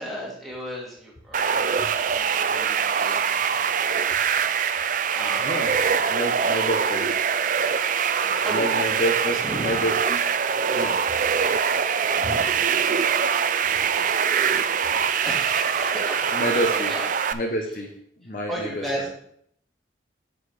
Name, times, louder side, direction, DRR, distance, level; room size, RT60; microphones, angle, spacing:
voice 1, 0.0-5.7 6.1-6.4 8.1-8.8 9.3-9.8 10.7-10.8 12.2-12.6 13.2-17.1 18.5-19.1, equal, ahead, -5 dB, 2.3 m, -36 dB
sound 1, 1.3-17.3, right 7 dB, 45° right, 0.4 m, -23 dB
voice 2, 6.1-7.2 8.5-10.2 10.7-11.0 12.2-12.3 16.3-16.9 17.3-17.9 18.2-19.1, equal, 45° left, 2 dB, 0.9 m, -28 dB
9.5 x 6.3 x 3.4 m, 0.68 s
head